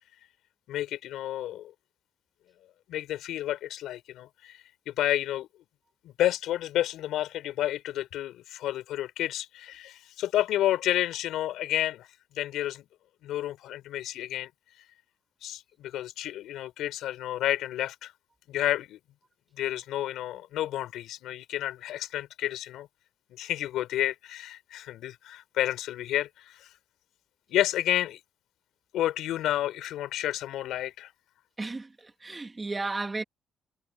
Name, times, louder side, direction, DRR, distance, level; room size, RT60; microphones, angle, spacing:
voice 1, 0.7-1.7 2.9-5.5 6.0-12.1 12.3-12.9 13.2-14.5 15.4-18.1 18.5-19.0 19.6-22.9 23.3-26.7 27.5-28.2 28.9-31.1, left 13 dB, 85° left, 5.0 m, -30 dB
voice 2, 32.2-33.2, right 3 dB, 25° right, 2.9 m, -33 dB
cardioid pair, 90°, 0 cm